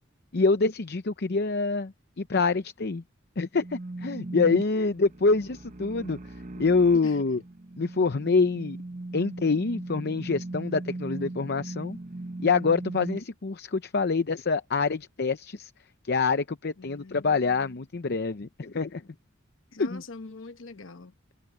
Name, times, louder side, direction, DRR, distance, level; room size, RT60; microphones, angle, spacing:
voice 1, 0.3-3.0 3.4-6.2 6.6-7.4 7.8-8.8 9.1-12.0 12.4-15.7 16.1-19.0 19.8-20.0, left 4 dB, 50° left, 0.7 m, -26 dB
sound 1, 3.5-13.2, right 2 dB, 40° right, 1.1 m, -38 dB
voice 2, 16.8-17.8 19.7-21.1, left 3 dB, 70° left, 1.0 m, -44 dB
head